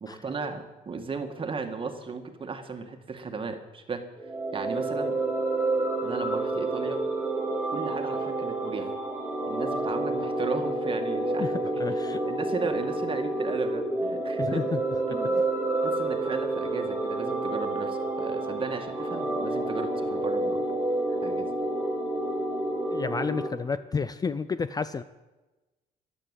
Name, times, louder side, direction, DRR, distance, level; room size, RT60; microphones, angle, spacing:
voice 1, 0.0-4.0 4.5-5.2 6.0-7.0 7.7-8.9 9.5-11.5 12.1-14.6 15.1-15.5 15.8-20.6 21.2-21.5, right 4 dB, 30° right, 6 dB, 2.0 m, -35 dB
sound 1, 4.2-23.5, right 2 dB, 10° right, 2.4 m, -29 dB
voice 2, 11.4-12.2 14.4-14.8 22.9-25.0, left 5 dB, 20° left, 14 dB, 0.5 m, -30 dB
13.5 x 11.0 x 8.3 m, 1.1 s
cardioid pair, 110°, 17 cm